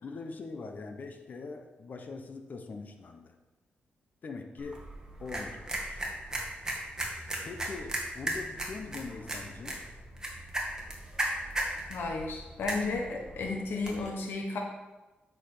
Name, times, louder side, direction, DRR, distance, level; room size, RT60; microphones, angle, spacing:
voice 1, 0.0-3.3 4.2-4.8 5.2-6.0 7.4-9.8, left 4 dB, 55° left, 5 dB, 1.1 m, -42 dB
sound 1, 4.6-14.1, right 1 dB, 20° right, 2.0 m, -37 dB
voice 2, 11.9-14.6, left 3 dB, 80° left, 0 dB, 1.3 m, -33 dB
8.3 x 6.6 x 5.1 m, 1.1 s
wide cardioid pair, 110°, 4 cm